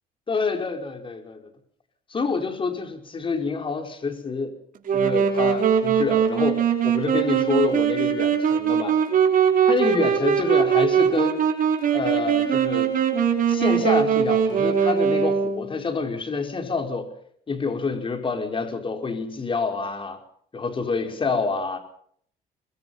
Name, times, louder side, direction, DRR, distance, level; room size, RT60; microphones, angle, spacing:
voice 1, 0.3-1.5 2.1-4.5 4.9-9.0 9.7-11.4 11.9-12.9 13.5-17.1 17.5-20.2 20.5-21.8, left 4 dB, 30° left, 6 dB, 4.8 m, -27 dB
Wind instrument woodwind instrument, 4.9-15.8, right 7 dB, 55° right, 5.2 m, -21 dB
23.5 x 23.0 x 5.7 m, 0.62 s
cardioid pair, 110°, 17 cm